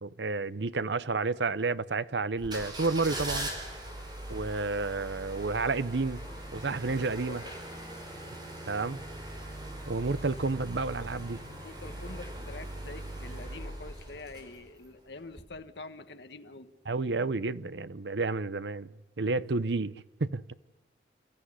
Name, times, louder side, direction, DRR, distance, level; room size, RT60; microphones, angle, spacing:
voice 1, 0.0-3.5 4.3-6.2 6.5-7.4 8.7-9.0 9.9-11.4 16.9-19.9 20.2-20.5, right 3 dB, 80° right, 0.8 m, -30 dB
sound 1, 2.4-14.9 15.3-15.4, right 1 dB, 25° right, 4.9 m, -41 dB
voice 2, 11.6-16.7, left 3 dB, 75° left, 1.4 m, -46 dB
29.5 x 14.0 x 9.7 m
head